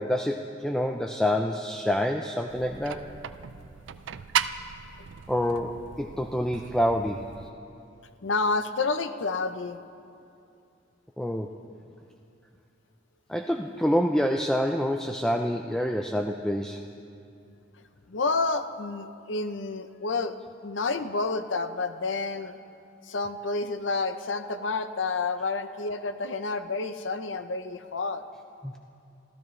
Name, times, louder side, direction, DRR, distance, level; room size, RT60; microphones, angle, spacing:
voice 1, 0.0-3.1 5.3-7.3 11.2-11.5 13.3-16.9 28.6-28.7, equal, 5° left, 3 dB, 0.4 m, -27 dB
sound 1, 2.5-7.5, right 8 dB, 80° right, 0.4 m, -36 dB
voice 2, 8.2-9.8 18.1-20.3 20.6-22.6 23.0-28.2, left 3 dB, 80° left, 10 dB, 0.7 m, -29 dB
26.0 x 14.5 x 3.2 m, 2.6 s
head